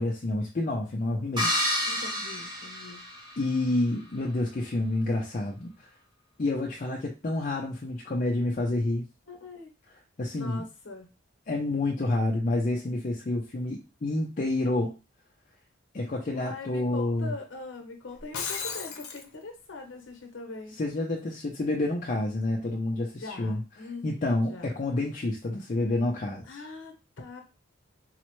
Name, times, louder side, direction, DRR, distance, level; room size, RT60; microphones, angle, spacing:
voice 1, 0.0-1.6 3.4-5.9 6.4-9.1 10.2-10.6 11.5-14.9 15.9-17.3 20.8-23.6 24.0-26.5, left 2 dB, 35° left, -1 dB, 0.4 m, -28 dB
sound 1, 1.4-3.6, left 1 dB, 20° right, 0.8 m, -30 dB
voice 2, 1.8-3.0 9.3-9.7 10.3-11.1 16.3-20.8 23.1-24.7 26.4-27.4, left 3 dB, 60° left, 3 dB, 0.9 m, -42 dB
Shatter, 18.2-19.3, left 6 dB, 90° left, 0.6 m, -34 dB
4.0 x 2.1 x 3.0 m, 0.29 s
head